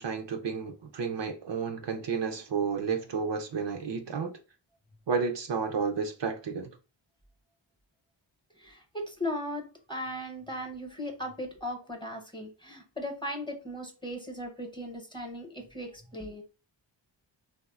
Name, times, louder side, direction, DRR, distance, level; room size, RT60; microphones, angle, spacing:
voice 1, 0.0-4.3 5.1-6.7, right 5 dB, 65° right, 0.6 m, -31 dB
voice 2, 8.6-16.4, left 1 dB, 10° left, 0.9 m, -37 dB
3.5 x 2.1 x 2.3 m
cardioid pair, 40°, 48 cm